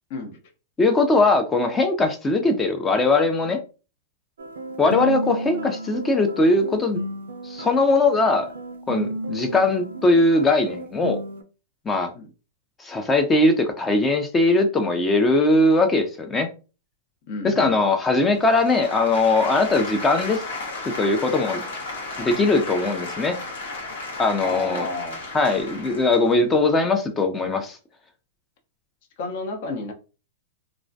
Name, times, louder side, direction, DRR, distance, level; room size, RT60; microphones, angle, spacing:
voice 1, 0.8-3.6 4.8-7.0 7.4-8.5 8.9-11.2 11.9-12.1 12.8-16.5 17.4-20.4 21.0-21.6 22.2-23.4 24.2-24.9 25.3-27.8, left 2 dB, 15° left, 5 dB, 0.4 m, -20 dB
sound 1, 4.4-11.4, right 1 dB, 85° right, 0.3 m, -33 dB
voice 2, 17.2-17.7 24.4-25.2 29.2-29.9, left 3 dB, 55° left, 3 dB, 0.7 m, -31 dB
sound 2, 18.3-26.4, left 3 dB, 85° left, 0.9 m, -34 dB
2.4 x 2.0 x 2.6 m, 0.33 s
hypercardioid pair, 130°, 0 cm